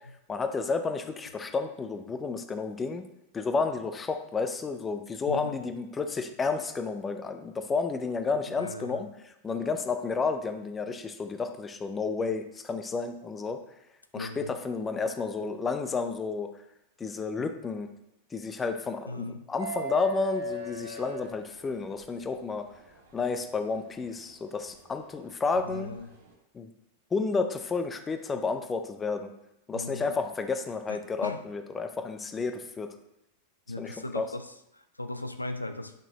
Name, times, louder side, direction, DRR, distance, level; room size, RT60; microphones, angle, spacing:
voice 1, 0.3-3.0 3.3-13.6 14.1-16.5 17.0-17.9 18.3-22.6 23.1-25.9 26.5-26.7 27.1-29.3 29.7-32.9 33.8-34.3, left 4 dB, 15° left, 7 dB, 0.7 m, -31 dB
voice 2, 8.6-9.0 14.1-14.5 19.1-19.5 25.6-26.1 29.7-30.1 30.9-31.4 33.7-34.5 34.7-35.9, left 2 dB, 85° left, 9 dB, 0.4 m, -38 dB
sound 1, 19.6-22.0 23.7-23.8 25.5-25.7, equal, 65° right, 1.5 m, -35 dB
9.0 x 5.9 x 3.0 m, 0.84 s
figure-of-eight pair, 90°, 0 cm